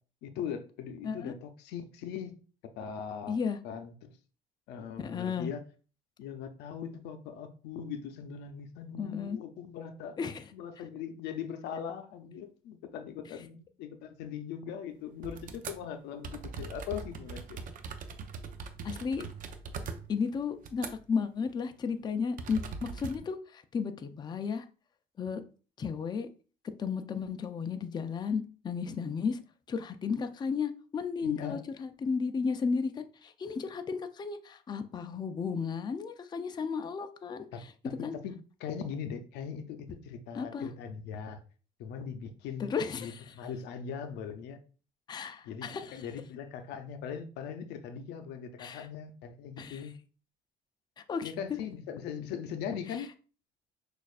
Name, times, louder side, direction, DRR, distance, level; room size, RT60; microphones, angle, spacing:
voice 1, 0.2-2.4 2.7-3.4 3.6-4.1 4.7-5.6 6.2-10.1 10.5-17.6 31.2-31.6 37.5-37.6 38.0-38.3 38.6-41.4 41.8-44.6 45.4-45.7 45.9-49.9 51.2-53.1, left 7 dB, 90° left, 0.6 m, -40 dB
voice 2, 3.3-3.6 5.0-5.5 9.0-9.4 10.2-10.4 18.8-19.2 20.1-24.6 25.2-25.4 25.8-26.3 26.8-29.4 29.7-37.5 37.8-38.2 40.3-40.7 42.6-43.3 45.1-46.0 48.6-48.9 49.6-49.8 51.0-51.3, left 5 dB, 25° left, 0.4 m, -34 dB
sound 1, 15.2-15.8 16.2-21.2 21.5-21.7 22.4-23.2, right 5 dB, 55° right, 0.6 m, -41 dB
6.3 x 2.5 x 2.4 m
cardioid pair, 110°, 17 cm